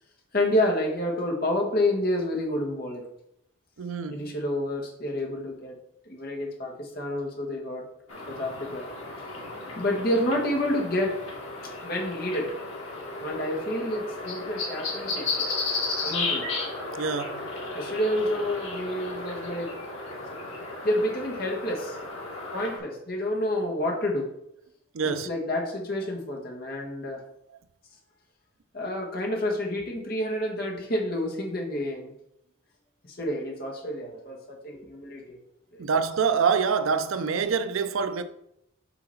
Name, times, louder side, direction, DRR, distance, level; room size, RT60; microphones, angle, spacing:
voice 1, 0.3-3.0 4.1-5.7 6.1-7.8 8.3-8.8 9.8-11.1 11.8-12.5 13.2-15.3 16.0-16.4 17.7-19.7 20.8-22.0 22.5-24.3 25.0-27.2 28.7-32.1 33.1-35.4 35.7-35.8, left 1 dB, 45° left, 1.5 m, -29 dB
voice 2, 3.8-4.3 17.0-17.4 24.9-25.3 35.8-38.2, right 6 dB, 75° right, 0.5 m, -26 dB
sound 1, 8.1-22.8, left 3 dB, 85° left, 2.0 m, -34 dB
5.8 x 3.8 x 5.7 m
head